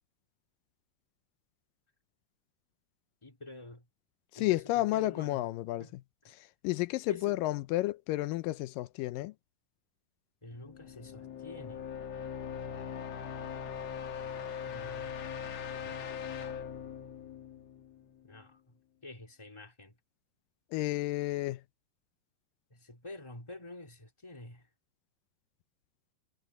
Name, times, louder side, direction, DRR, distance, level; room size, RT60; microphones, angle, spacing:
voice 1, 3.2-3.9 4.4-5.5 5.8-5.9 7.1-7.4 10.4-11.8 14.7-15.2 15.7-16.0 18.2-18.6 19.0-19.9 22.7-24.7, left 2 dB, 10° left, 3.1 m, -48 dB
voice 2, 4.3-6.0 6.3-9.3 20.7-21.6, left 17 dB, 85° left, 2.3 m, -32 dB
sound 1, 10.6-18.4, left 7 dB, 55° left, 2.4 m, -41 dB
omnidirectional pair, 3.9 m